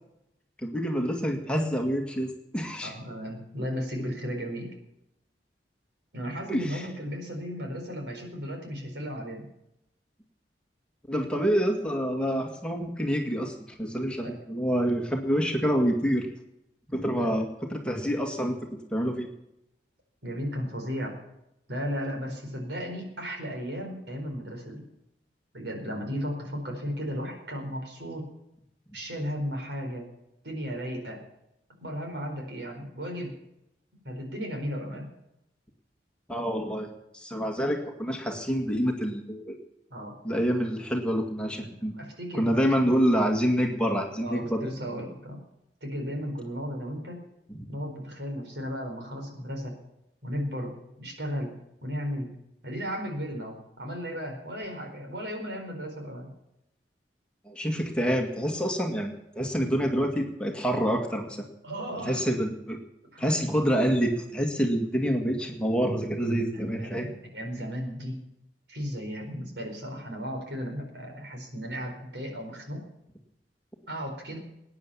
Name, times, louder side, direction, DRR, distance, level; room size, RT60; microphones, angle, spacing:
voice 1, 0.6-2.9 6.5-6.9 11.1-16.3 16.9-18.6 18.9-19.3 36.3-36.9 37.1-39.6 40.2-41.9 42.3-44.6 47.5-47.6 57.5-61.5 61.9-62.8 63.2-67.1, equal, 5° left, 3 dB, 1.9 m, -27 dB
voice 2, 2.8-4.7 6.1-9.4 14.2-14.4 17.2-17.3 19.0-19.1 20.2-21.2 21.7-24.8 25.5-28.3 28.9-30.1 30.4-31.2 31.8-33.4 34.0-35.1 39.9-40.1 41.6-41.7 41.9-42.5 42.8-43.0 44.2-45.4 45.8-47.2 47.7-49.7 50.2-51.5 51.8-52.3 52.6-56.3 61.6-62.2 63.1-63.3 66.5-68.2 68.7-72.8 73.9-74.4, equal, 75° right, 3 dB, 4.6 m, -35 dB
19.5 x 9.7 x 7.2 m, 0.85 s
head